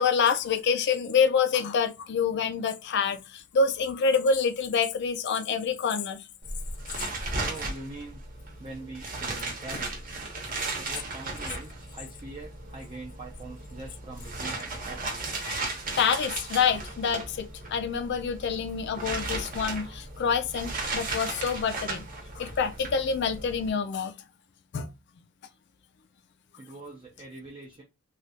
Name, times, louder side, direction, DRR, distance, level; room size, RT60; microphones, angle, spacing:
voice 1, 0.0-6.2 15.4-22.0 22.4-24.1 24.7-24.9, left 5 dB, 55° left, 0.4 m, -27 dB
sound 1, 6.4-23.7, right 3 dB, 40° right, 0.8 m, -36 dB
voice 2, 7.4-8.2 8.6-10.2 10.7-15.4 26.6-27.8, right 2 dB, 25° right, 0.5 m, -43 dB
3.1 x 2.3 x 2.8 m
head